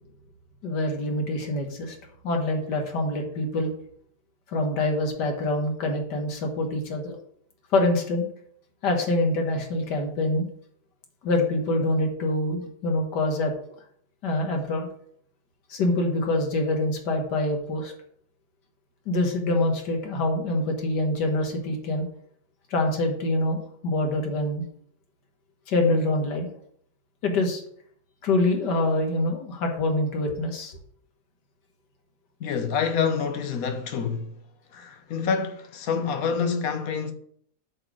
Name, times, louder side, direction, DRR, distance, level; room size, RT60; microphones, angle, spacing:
voice 1, 0.6-2.0 2.2-3.7 4.5-7.2 7.7-8.3 8.8-10.5 11.2-13.5 14.2-14.9 15.7-17.9 19.1-22.1 22.7-24.6 25.7-26.5 27.2-27.6 28.2-30.8, left 2 dB, 85° left, 2.0 m, -25 dB
voice 2, 32.4-34.4 34.7-37.1, left 6 dB, 60° left, 1.2 m, -27 dB
7.5 x 4.1 x 6.2 m
omnidirectional pair, 1.8 m